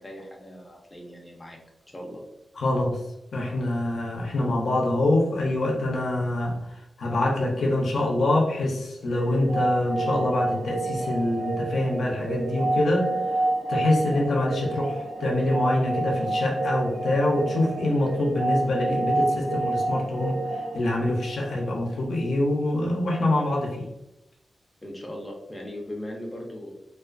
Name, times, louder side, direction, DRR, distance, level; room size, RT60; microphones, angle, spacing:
voice 1, 0.0-1.6 1.9-2.2 24.8-26.7, left 1 dB, 15° left, -1 dB, 0.5 m, -38 dB
voice 2, 2.6-3.0 3.3-13.1 13.7-20.4 20.7-23.8, left 1 dB, 85° left, -1 dB, 0.6 m, -25 dB
sound 1, 9.1-21.9, right 2 dB, 80° right, 0.4 m, -29 dB
2.3 x 2.3 x 2.4 m, 0.88 s
wide cardioid pair, 135°, 0 cm